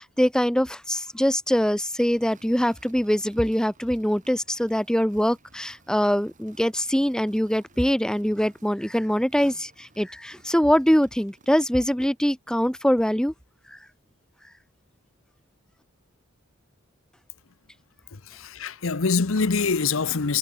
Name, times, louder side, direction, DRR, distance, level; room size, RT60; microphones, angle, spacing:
voice 1, 0.0-13.3 13.7-13.8, equal, 5° left, 1.0 m, -23 dB
sound 1, 2.2-12.2, right 3 dB, 40° right, 7.1 m, -58 dB
voice 2, 18.1-20.4, left 4 dB, 70° left, 0.9 m, -24 dB
head